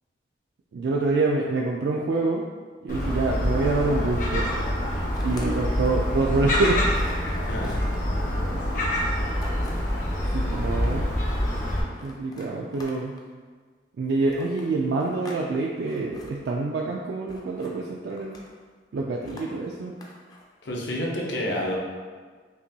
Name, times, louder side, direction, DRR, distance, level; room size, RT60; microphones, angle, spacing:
voice 1, 0.7-2.4 2.8-4.5 5.2-6.8 9.1-9.2 10.3-11.1 12.0-13.2 14.0-18.5 18.9-19.9, right 3 dB, 65° right, -1 dB, 0.3 m, -26 dB
Gull seagull, 2.9-11.8, equal, 45° left, 0.7 m, -26 dB
Wind instrument woodwind instrument, 3.1-9.1, right 2 dB, 90° right, 1.2 m, -49 dB
sound 1, 5.1-6.1 6.5-6.6 6.9-8.0 9.4-10.0 10.6-11.2 11.9-13.3 14.3-15.4 15.7-16.3 17.3-17.7 18.1-18.6 19.2-20.4, left 1 dB, 20° left, 0.4 m, -46 dB
voice 2, 7.5-7.8 20.6-21.8, equal, 75° left, -2 dB, 0.7 m, -29 dB
5.4 x 2.2 x 2.7 m, 1.5 s
head